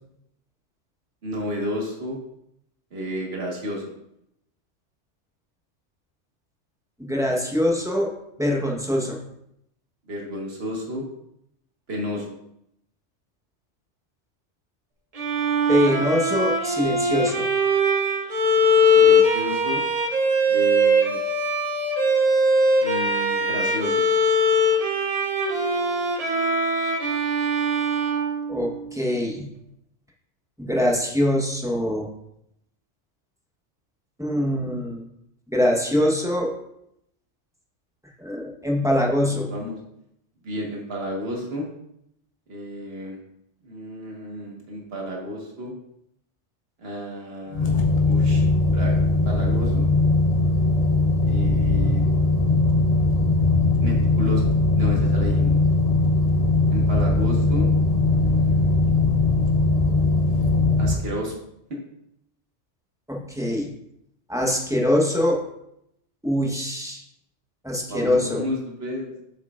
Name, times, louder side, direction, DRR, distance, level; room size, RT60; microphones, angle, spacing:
voice 1, 1.2-2.2 2.9-3.8 10.1-11.0 11.9-12.4 18.9-19.8 20.5-21.2 22.8-24.0 39.2-39.8 40.4-41.7 42.5-43.2 43.6-45.7 46.8-47.7 48.1-48.4 48.7-49.9 51.2-52.0 53.8-55.6 56.7-57.7 58.1-58.7 60.8-61.4 61.7-61.8 67.9-69.1, equal, 55° right, -1 dB, 1.7 m, -32 dB
voice 2, 7.0-8.1 8.4-9.2 15.7-17.5 28.5-29.5 30.6-32.1 34.2-35.0 35.5-36.5 38.2-39.5 63.1-63.7 64.3-65.4 66.2-67.0 67.6-68.4, left 1 dB, 5° right, -2 dB, 1.0 m, -23 dB
Bowed string instrument, 15.2-29.1, equal, 40° right, 0.7 m, -21 dB
sound 1, 47.5-60.9, left 2 dB, 40° left, 0.7 m, -20 dB
7.8 x 6.5 x 2.5 m, 0.78 s
omnidirectional pair, 1.2 m